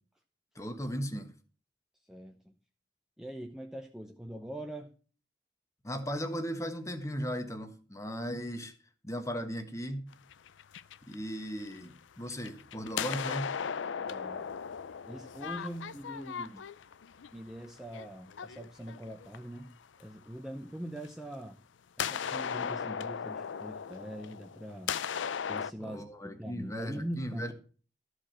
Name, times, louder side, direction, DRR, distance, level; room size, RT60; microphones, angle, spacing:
voice 1, 0.5-1.3 5.8-8.7 9.0-10.1 11.1-13.5 25.8-27.5, equal, 15° left, 1.2 m, -37 dB
voice 2, 2.1-2.6 3.2-4.9 14.0-14.5 15.1-16.6 17.3-19.7 20.0-21.6 22.0-24.9 25.5-26.1 26.4-27.5, right 1 dB, 5° right, 0.7 m, -42 dB
sound 1, 10.1-11.9 12.3-19.6 21.0-21.1 22.0-25.7, left 7 dB, 90° left, 0.5 m, -37 dB
13.5 x 5.0 x 7.5 m
head